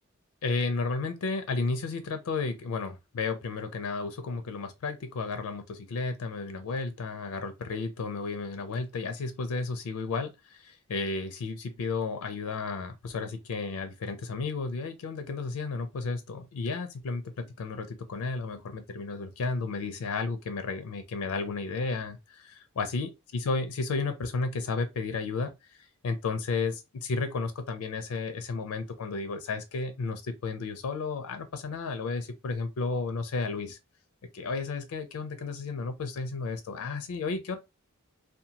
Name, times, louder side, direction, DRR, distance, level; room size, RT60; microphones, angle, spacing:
voice 1, 0.4-33.8 34.3-37.6, left 4 dB, 75° left, 0.4 m, -33 dB
2.7 x 2.2 x 2.7 m
head